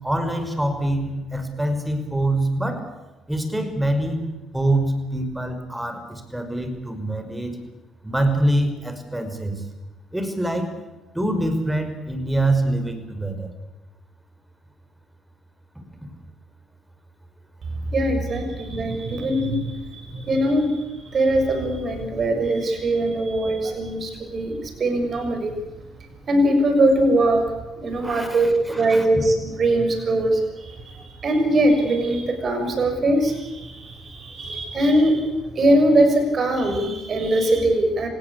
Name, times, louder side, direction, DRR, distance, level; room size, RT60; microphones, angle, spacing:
voice 1, 0.0-2.8 3.3-4.2 4.5-7.5 8.0-9.6 10.1-10.7 11.1-13.5 28.0-29.1, right 1 dB, 5° right, 7 dB, 5.5 m, -25 dB
voice 2, 17.9-24.5 24.8-25.5 26.3-27.4 27.8-35.3 35.5-38.1, right 1 dB, 45° right, 5 dB, 6.7 m, -21 dB
25.5 x 19.0 x 8.6 m, 1.1 s
figure-of-eight pair, 50°, 0 cm